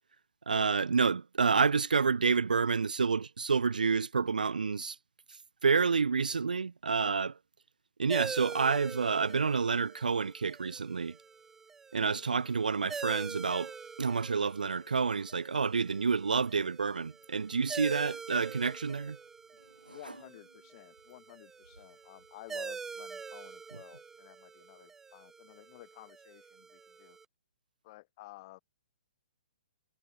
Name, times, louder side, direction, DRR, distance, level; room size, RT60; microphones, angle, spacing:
voice 1, 0.5-5.0 5.6-7.3 8.0-11.2 11.9-13.7 14.0-19.2, right 5 dB, 70° right, 0.7 m, -29 dB
sound 1, 8.1-27.2, right 5 dB, 10° right, 0.3 m, -45 dB
sound 2, 17.0-23.3, right 2 dB, 85° right, 4.7 m, -60 dB
voice 2, 19.9-27.2 27.8-28.6, left 20 dB, 35° left, 5.7 m, -53 dB
figure-of-eight pair, 125°, 5 cm